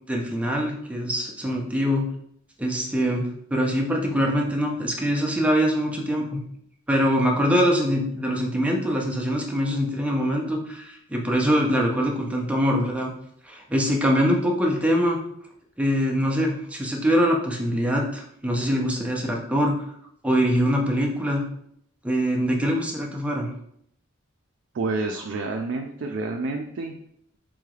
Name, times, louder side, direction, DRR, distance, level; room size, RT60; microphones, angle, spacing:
voice 1, 0.1-2.1 2.6-6.4 6.9-13.1 13.4-15.2 15.8-19.8 20.2-21.5 22.0-23.5, equal, 5° right, 0 dB, 0.5 m, -23 dB
voice 2, 24.7-26.9, right 3 dB, 60° right, 3 dB, 0.3 m, -29 dB
3.7 x 3.2 x 2.3 m, 0.69 s
head